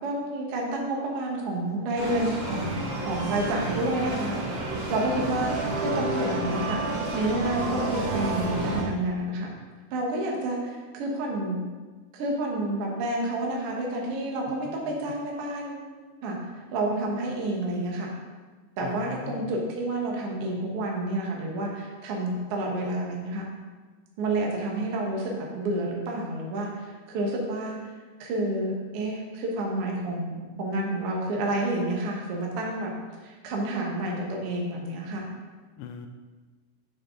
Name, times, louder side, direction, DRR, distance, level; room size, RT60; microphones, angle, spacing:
voice 1, 0.0-2.7 3.0-4.6 4.9-9.5 9.9-11.6 12.1-15.8 16.2-16.4 16.7-18.1 18.8-23.5 24.2-27.8 28.2-32.9 33.2-35.3, right 1 dB, 65° right, -1 dB, 1.4 m, -29 dB
sound 1, 2.0-8.8, right 2 dB, 90° right, 3.6 m, -30 dB
voice 2, 5.4-5.8 14.4-14.9 18.8-19.5 35.8-36.1, left 7 dB, 85° left, 6 dB, 2.5 m, -40 dB
8.5 x 6.4 x 3.7 m, 1.4 s
omnidirectional pair, 4.5 m